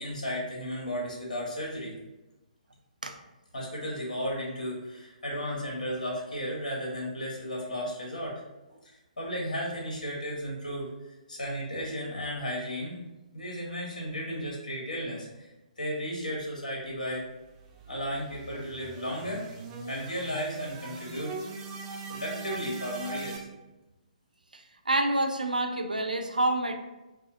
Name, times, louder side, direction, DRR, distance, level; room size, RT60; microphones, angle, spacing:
voice 1, 0.0-1.9 3.5-8.4 8.7-8.9 9.2-10.9 11.3-13.0 13.3-15.5 15.8-17.2 17.9-19.5 19.9-21.4 22.1-23.5, equal, 65° left, -3 dB, 1.5 m, -34 dB
sound 1, 17.0-23.4, right 4 dB, 25° right, 0.5 m, -41 dB
voice 2, 24.5-26.7, right 2 dB, 80° right, 5 dB, 0.5 m, -28 dB
4.9 x 2.3 x 2.8 m, 1.0 s
figure-of-eight pair, 130°, 4 cm